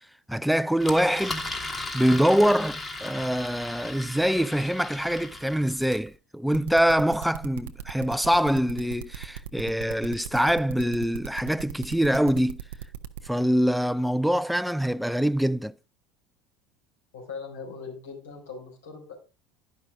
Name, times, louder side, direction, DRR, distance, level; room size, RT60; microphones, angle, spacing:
voice 1, 0.3-1.5 1.9-12.6 13.3-15.7, equal, ahead, 0.4 m, -24 dB
Engine, 0.8-6.1, left 2 dB, 15° left, 1.6 m, -36 dB
sound 1, 6.5-13.3, right 11 dB, 75° right, 0.7 m, -38 dB
voice 2, 17.1-19.1, left 5 dB, 80° left, 3.8 m, -40 dB
10.5 x 5.7 x 4.9 m
hypercardioid pair, 75°, 0 cm